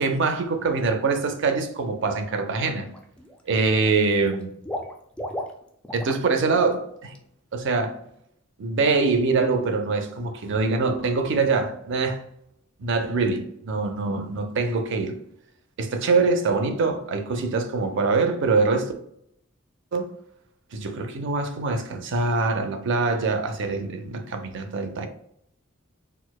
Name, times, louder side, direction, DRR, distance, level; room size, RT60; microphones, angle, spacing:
voice 1, 0.0-2.9 3.5-4.5 5.9-7.2 7.5-8.0 8.6-12.2 12.8-15.2 15.8-18.9 19.9-20.1 20.7-25.1, right 4 dB, 60° right, 0.5 m, -24 dB
Water / Liquid, 2.2-2.4 2.7-3.4 3.7-6.2 6.5-6.7 7.1-7.2, left 1 dB, 5° left, 0.3 m, -36 dB
4.4 x 2.1 x 2.2 m
head